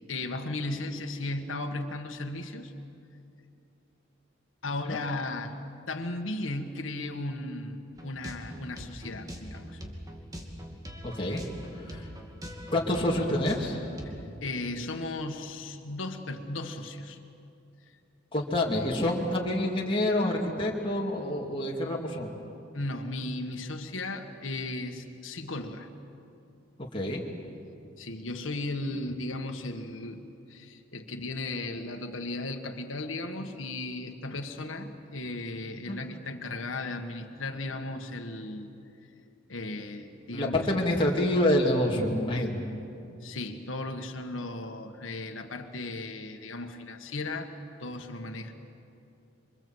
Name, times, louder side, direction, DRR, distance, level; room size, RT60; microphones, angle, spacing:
voice 1, 0.1-2.7 4.6-5.5 5.9-9.8 14.4-17.2 22.7-25.9 28.0-30.2 30.5-38.7 39.5-40.6 43.2-47.5 47.8-48.5, left 2 dB, 85° left, 4 dB, 1.7 m, -36 dB
sound 1, 8.0-14.2, equal, 20° right, 2.5 m, -42 dB
voice 2, 11.0-11.4 11.7-12.1 12.7-13.8 18.3-22.3 26.9-27.2 35.9-36.1 40.3-42.7, left 1 dB, 25° left, -2 dB, 2.6 m, -27 dB
27.0 x 25.0 x 8.0 m, 2.7 s
head